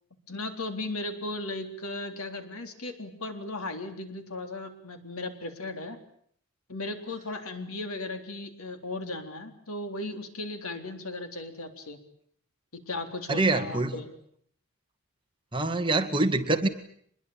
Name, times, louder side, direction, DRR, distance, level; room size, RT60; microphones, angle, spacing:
voice 1, 0.3-6.0 6.7-12.0 12.7-14.1, left 2 dB, 75° left, 7 dB, 3.7 m, -36 dB
voice 2, 13.3-13.9 15.5-16.7, right 2 dB, 20° right, 7 dB, 1.9 m, -25 dB
25.5 x 21.5 x 8.8 m, 0.64 s
head